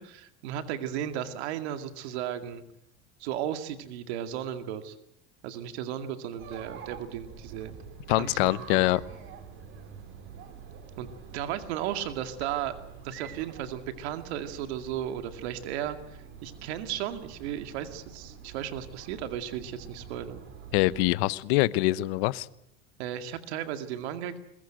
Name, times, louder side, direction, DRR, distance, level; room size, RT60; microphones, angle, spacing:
voice 1, 0.0-2.6 3.2-5.0 5.4-7.8 8.1-8.8 11.0-12.8 13.0-20.4 23.0-24.4, right 10 dB, 85° right, 8 dB, 2.3 m, -35 dB
Chatter, 6.4-21.1, right 6 dB, 40° right, 3.9 m, -47 dB
voice 2, 8.1-9.0 20.7-22.5, left 19 dB, 70° left, 18 dB, 1.0 m, -24 dB
22.5 x 21.5 x 9.2 m, 0.76 s
cardioid pair, 165°, 32 cm